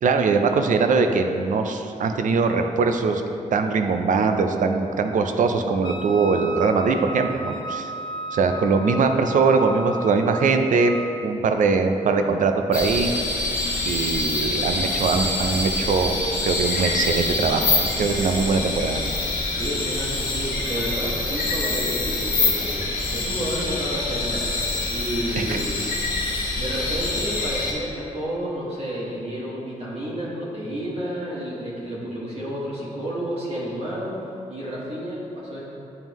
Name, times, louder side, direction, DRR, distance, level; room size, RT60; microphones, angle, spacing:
voice 1, 0.0-3.2 3.5-7.9 8.3-13.1 13.9-19.0 25.4-25.5, right 4 dB, 65° right, 6 dB, 0.4 m, -21 dB
Wind instrument woodwind instrument, 5.8-11.2, right 1 dB, 35° left, 0.4 m, -34 dB
sound 1, 12.7-27.7, left 2 dB, 80° left, 1.1 m, -25 dB
voice 2, 19.6-22.8 23.1-25.8 26.5-34.1 34.5-35.7, equal, 45° right, -7 dB, 1.4 m, -31 dB
8.9 x 3.6 x 3.0 m, 2.7 s
wide cardioid pair, 115°, 14 cm